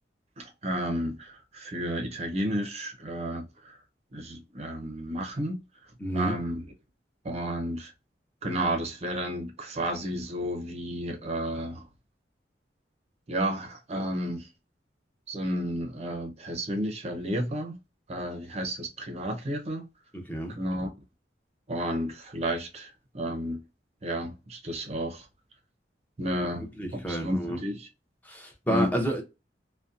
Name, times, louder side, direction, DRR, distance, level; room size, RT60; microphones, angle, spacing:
voice 1, 0.4-3.8 4.1-5.6 6.1-6.7 7.2-7.9 8.4-11.9 13.3-14.5 15.3-17.8 18.1-19.9 20.6-20.9 21.7-23.6 24.0-25.3 26.2-26.7 26.9-27.9 28.7-28.9, right 1 dB, 40° right, 0.6 m, -32 dB
voice 2, 6.0-6.3 20.1-20.5 26.5-27.6 28.2-29.2, equal, 10° left, 0.7 m, -30 dB
2.7 x 2.1 x 2.3 m
head